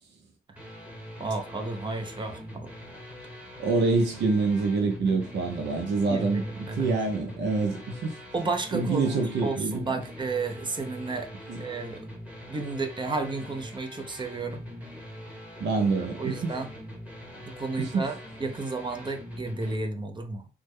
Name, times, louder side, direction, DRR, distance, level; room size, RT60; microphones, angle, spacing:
sound 1, 0.6-19.8, equal, 5° right, 1.0 m, -43 dB
voice 1, 1.2-2.7 6.1-6.9 8.3-11.3 11.6-12.0 12.5-14.6 15.9-16.7 17.4-20.5, right 3 dB, 25° right, 0.6 m, -32 dB
voice 2, 3.6-6.4 6.8-8.2 8.7-9.8 11.5-11.6 15.6-16.5 17.8-18.1, right 4 dB, 60° right, 0.7 m, -26 dB
3.3 x 2.1 x 3.1 m
cardioid pair, 90°, 20 cm